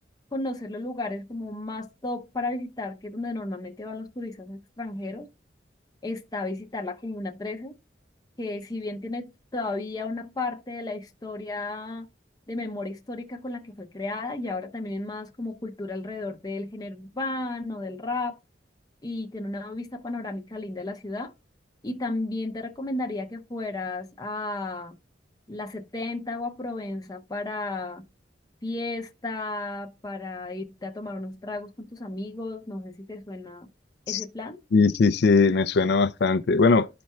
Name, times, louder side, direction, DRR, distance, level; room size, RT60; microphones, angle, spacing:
voice 1, 0.3-5.3 6.0-7.7 8.4-12.1 12.5-18.4 19.0-21.3 21.8-25.0 25.5-28.1 28.6-33.7 34.1-34.6, left 2 dB, 20° left, 0.7 m, -33 dB
voice 2, 34.7-36.9, left 4 dB, 65° left, 0.4 m, -20 dB
12.5 x 4.3 x 2.3 m
head